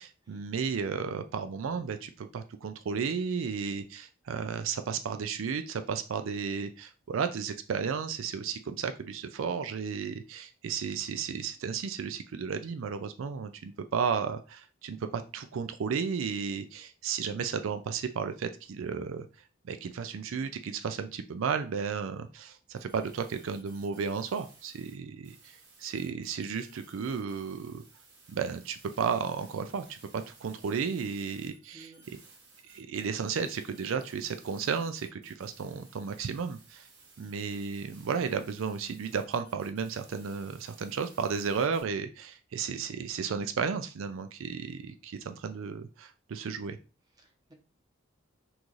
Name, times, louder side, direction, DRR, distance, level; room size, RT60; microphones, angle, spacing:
voice 1, 0.0-19.3 19.6-27.8 28.3-31.9 32.6-36.9 37.2-46.8, right 6 dB, 80° right, 9 dB, 0.4 m, -33 dB
sound 1, 22.8-24.9 25.2-41.8, right 3 dB, 55° right, 1.6 m, -57 dB
voice 2, 31.7-32.1 47.1-47.5, right 2 dB, 20° right, 2 dB, 0.9 m, -56 dB
6.1 x 2.4 x 3.2 m, 0.34 s
head